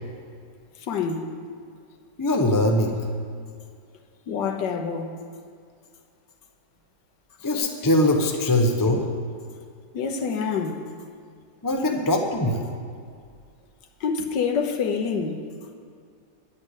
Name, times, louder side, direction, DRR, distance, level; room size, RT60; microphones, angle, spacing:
voice 1, 0.9-1.3 4.3-5.1 9.9-10.9 14.0-15.5, left 5 dB, 75° left, 1.6 m, -26 dB
voice 2, 2.2-3.0 7.4-9.0 11.6-12.6, left 1 dB, 15° left, 0.7 m, -21 dB
11.0 x 8.6 x 8.3 m
omnidirectional pair, 2.0 m